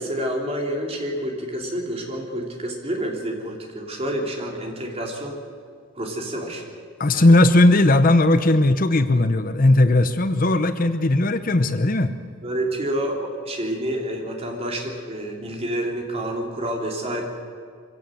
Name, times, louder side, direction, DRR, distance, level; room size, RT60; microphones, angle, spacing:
voice 1, 0.0-5.4 6.0-6.6 7.1-7.4 12.4-17.2, right 1 dB, 30° right, 0 dB, 3.4 m, -28 dB
voice 2, 7.0-12.1, left 2 dB, 40° left, 10 dB, 0.8 m, -17 dB
24.0 x 16.5 x 7.7 m, 2.1 s
head